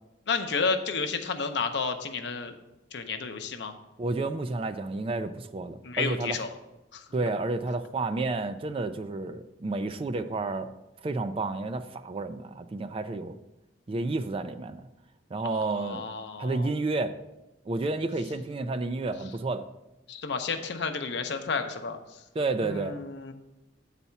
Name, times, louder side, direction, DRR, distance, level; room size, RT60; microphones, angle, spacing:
voice 1, 0.3-2.5 2.9-3.7 5.8-6.5 6.9-7.0 15.4-16.7 20.1-22.0 22.6-23.3, left 4 dB, 65° left, 6 dB, 0.7 m, -31 dB
voice 2, 4.0-6.4 7.1-10.7 11.0-13.4 13.9-14.8 15.3-16.0 16.4-17.1 17.7-19.7 22.3-23.0, right 3 dB, 30° right, 10 dB, 0.4 m, -30 dB
8.2 x 4.2 x 5.6 m, 0.96 s
head